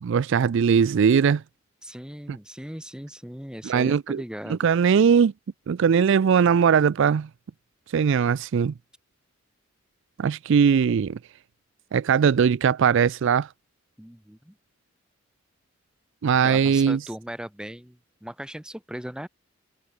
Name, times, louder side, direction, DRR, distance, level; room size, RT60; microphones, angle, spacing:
voice 1, 0.0-1.4 3.6-4.2 4.5-5.3 5.7-7.3 7.9-8.7 10.2-11.2 11.9-13.5 16.2-17.0, right 7 dB, 65° right, 0.4 m, -20 dB
voice 2, 1.8-4.7 14.0-14.5 16.4-19.3, equal, 5° right, 1.1 m, -38 dB
head